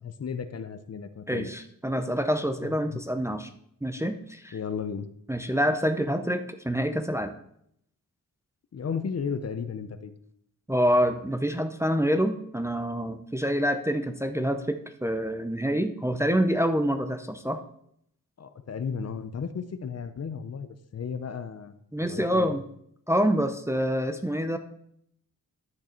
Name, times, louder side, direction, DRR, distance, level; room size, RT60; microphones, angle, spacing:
voice 1, 0.0-1.5 2.6-3.0 4.5-5.1 8.7-10.1 18.4-22.5, left 6 dB, 45° left, 11 dB, 0.7 m, -34 dB
voice 2, 1.3-3.5 3.8-4.5 5.3-7.3 10.7-17.6 21.9-22.6 23.1-24.6, equal, 10° right, 7 dB, 0.6 m, -26 dB
10.5 x 6.4 x 4.4 m, 0.72 s
wide cardioid pair, 120°, 34 cm